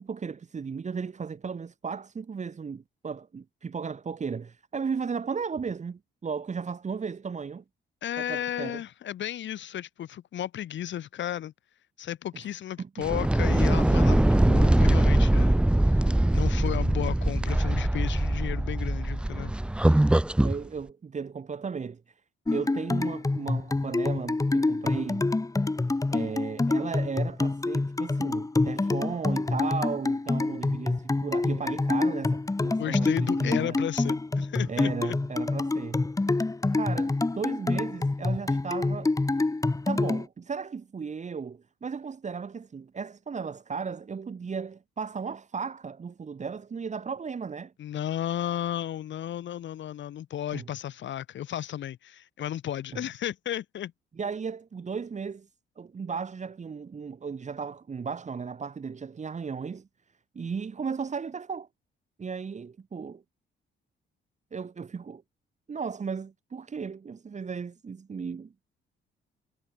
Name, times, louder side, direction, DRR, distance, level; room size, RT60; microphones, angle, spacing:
voice 1, 0.0-7.6 8.2-8.8 12.8-12.9 20.4-22.2 22.5-25.3 26.1-33.8 34.7-36.1 36.7-39.1 39.9-47.7 50.5-50.7 52.9-53.0 54.2-55.5 55.8-59.9 60.3-61.7 62.2-63.2 64.5-65.2 65.7-68.5, right 5 dB, 35° right, 2.2 m, -35 dB
voice 2, 8.0-11.5 12.0-19.5 32.8-35.2 47.8-53.9, left 11 dB, 70° left, 2.3 m, -34 dB
sound 1, 13.0-20.6, right 1 dB, 5° right, 0.5 m, -22 dB
sound 2, 22.5-40.3, left 2 dB, 15° left, 2.0 m, -27 dB
cardioid pair, 90°, 20 cm